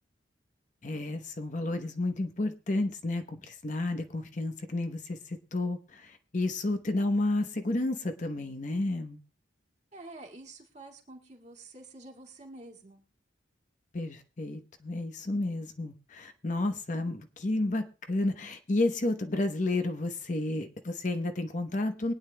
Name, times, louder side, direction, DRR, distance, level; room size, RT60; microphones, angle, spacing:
voice 1, 0.8-9.2 13.9-22.1, left 2 dB, 40° left, 0.8 m, -31 dB
voice 2, 9.9-13.0, right 2 dB, 35° right, 2.0 m, -48 dB
23.0 x 9.5 x 2.2 m
head